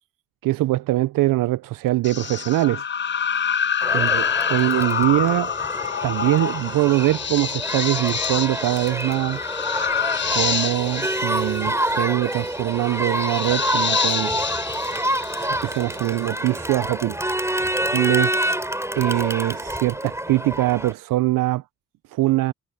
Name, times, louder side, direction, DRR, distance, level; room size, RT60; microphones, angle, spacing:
voice 1, 0.4-2.9 3.9-5.5 6.0-9.4 10.3-14.4 15.4-17.2 17.9-18.3 19.0-21.6 22.1-22.5, right 17 dB, 80° right, 0.6 m, -22 dB
sound 1, 2.0-15.9, left 7 dB, 35° left, 0.6 m, -27 dB
Crowd, 3.8-20.9, right 1 dB, 10° right, 6.2 m, -27 dB
supercardioid pair, 50°, 32 cm